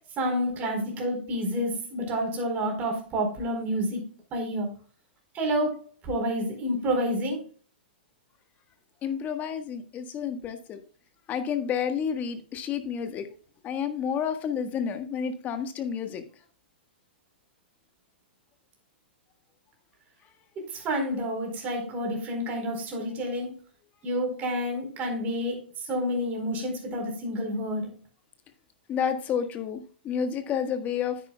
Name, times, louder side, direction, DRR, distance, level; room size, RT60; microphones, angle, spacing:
voice 1, 0.2-4.7 5.3-7.4 20.6-23.5 24.0-28.0, equal, 30° right, 2 dB, 4.3 m, -29 dB
voice 2, 9.0-10.8 11.3-13.3 13.6-16.2 28.9-31.2, left 7 dB, 30° left, 8 dB, 1.5 m, -30 dB
9.9 x 9.6 x 2.3 m, 0.42 s
hypercardioid pair, 120°, 6 cm